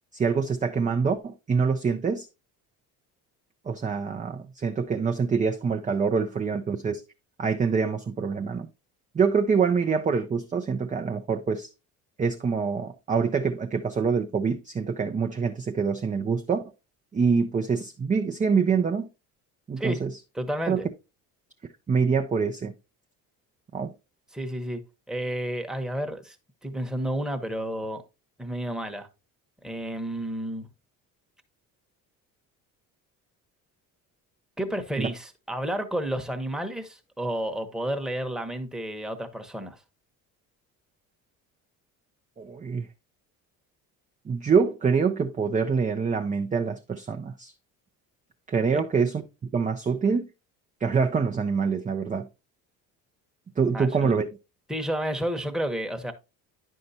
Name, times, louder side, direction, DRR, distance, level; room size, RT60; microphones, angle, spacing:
voice 1, 0.1-2.3 3.7-7.0 7.4-8.7 9.1-11.7 12.2-16.6 17.1-19.1 19.7-20.1 20.7-20.8 21.9-22.7 23.7-23.9 35.0-35.1 42.4-42.9 44.3-47.5 48.5-49.2 49.5-50.3 50.8-52.3 53.6-54.3, right 5 dB, 20° right, 0.5 m, -25 dB
voice 2, 20.3-20.9 24.3-24.8 25.1-26.4 26.6-28.0 28.4-29.1 29.6-30.7 34.6-39.8 48.7-48.8 53.7-54.1 54.7-56.1, right 1 dB, ahead, 1.0 m, -31 dB
9.4 x 5.5 x 2.7 m
hypercardioid pair, 65°, 43 cm